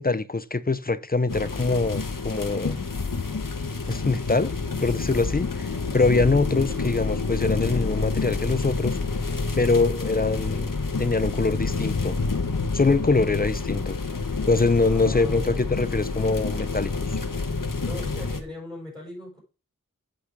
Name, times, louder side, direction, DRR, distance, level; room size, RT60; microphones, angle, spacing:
voice 1, 0.0-2.8 3.9-4.5 4.8-9.0 9.6-10.7 11.0-12.2 12.7-14.0 14.5-17.1, left 3 dB, 25° left, 0.6 m, -24 dB
sound 1, 1.3-18.4, left 4 dB, 75° left, 1.2 m, -28 dB
voice 2, 14.8-15.4 17.7-19.4, left 1 dB, 15° right, 5.6 m, -38 dB
8.3 x 6.2 x 4.7 m
wide cardioid pair, 55°, 33 cm